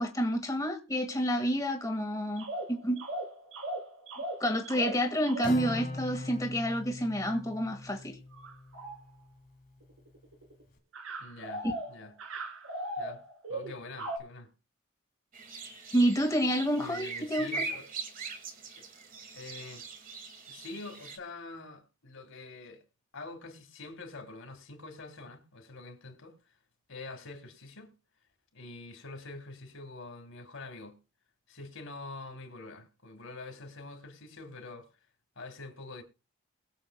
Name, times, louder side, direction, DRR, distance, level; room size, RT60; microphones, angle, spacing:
voice 1, 0.0-3.0 4.4-8.2 15.9-17.5, equal, 15° left, 1.7 m, -29 dB
sound 1, 2.4-5.8 7.6-7.8 8.3-9.1 10.1-10.6 10.9-14.2, right 1 dB, 75° right, 2.1 m, -38 dB
Acoustic guitar, 5.4-9.1, left 2 dB, 45° left, 1.9 m, -40 dB
voice 2, 11.2-12.1 13.0-13.2 13.5-14.5 16.8-17.8 18.8-18.9 19.3-19.8 20.5-22.8 23.1-26.3 26.9-27.9 28.5-31.0 31.5-34.9 35.4-36.0, left 3 dB, 80° left, 2.9 m, -45 dB
sound 2, 15.3-21.2, right 4 dB, 40° right, 1.5 m, -41 dB
21.5 x 7.5 x 2.2 m
head